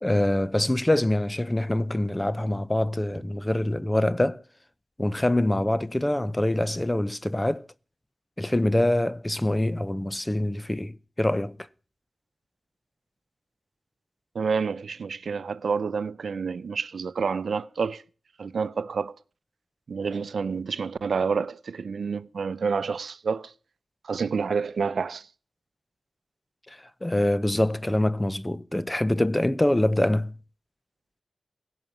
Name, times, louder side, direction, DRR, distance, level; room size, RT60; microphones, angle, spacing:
voice 1, 0.0-4.4 5.0-7.7 8.4-11.6 26.7-30.4, left 1 dB, 15° left, 0.7 m, -25 dB
voice 2, 14.3-18.0 18.4-19.1 19.9-23.5 24.0-25.3, right 5 dB, 70° right, 0.6 m, -28 dB
16.5 x 5.9 x 9.2 m
cardioid pair, 70°, 0 cm